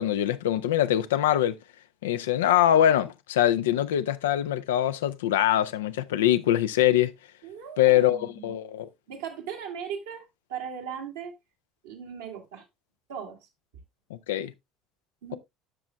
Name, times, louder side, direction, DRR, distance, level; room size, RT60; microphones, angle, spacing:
voice 1, 0.0-1.6 2.0-7.1 7.8-8.9 14.3-14.5, left 12 dB, 80° left, 0.5 m, -23 dB
voice 2, 7.4-8.5 9.1-11.3 11.8-12.7 13.1-13.4 15.2-15.4, right 7 dB, 80° right, 2.0 m, -38 dB
13.5 x 6.0 x 2.2 m
hypercardioid pair, 60°, 0 cm